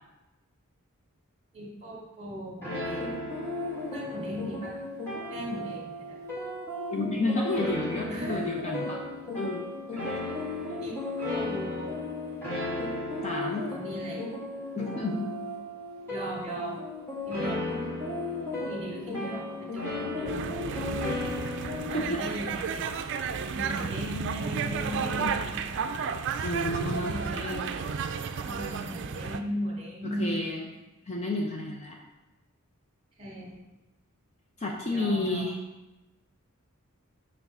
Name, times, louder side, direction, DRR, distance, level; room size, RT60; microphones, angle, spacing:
voice 1, 1.5-3.2 3.9-4.8 5.3-6.2 8.1-8.5 10.8-11.0 11.3-12.0 13.6-14.3 16.1-16.8 17.3-17.8 18.6-21.6 21.9-25.6 26.9-28.0 28.4-30.6 33.2-33.6 34.9-35.5, equal, 30° right, -4 dB, 2.2 m, -38 dB
sound 1, 2.6-22.2, left 2 dB, 10° left, 1.8 m, -34 dB
voice 2, 6.9-9.0 9.4-10.0 13.2-13.7 14.8-15.4 21.9-22.2 25.1-25.4 26.4-27.7 30.2-30.7 31.1-32.0 34.6-35.6, left 1 dB, 30° left, -1 dB, 0.7 m, -31 dB
sound 2, 20.3-29.4, right 6 dB, 55° right, 0.4 m, -32 dB
7.1 x 3.4 x 5.4 m, 1.0 s
head